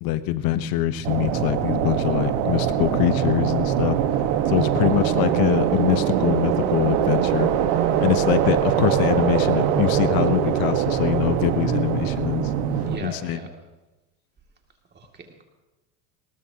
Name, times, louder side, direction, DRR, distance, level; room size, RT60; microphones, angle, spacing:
voice 1, 0.0-4.0 4.5-7.5 8.0-12.5 13.0-13.4, left 12 dB, 50° left, 13 dB, 1.0 m, -23 dB
sound 1, 1.0-13.0, right 10 dB, 60° right, 1.5 m, -22 dB
voice 2, 4.6-4.9 12.8-13.5 14.9-15.4, right 3 dB, 20° right, 2 dB, 2.5 m, -39 dB
20.5 x 18.5 x 2.9 m, 1.1 s
supercardioid pair, 110°, 45 cm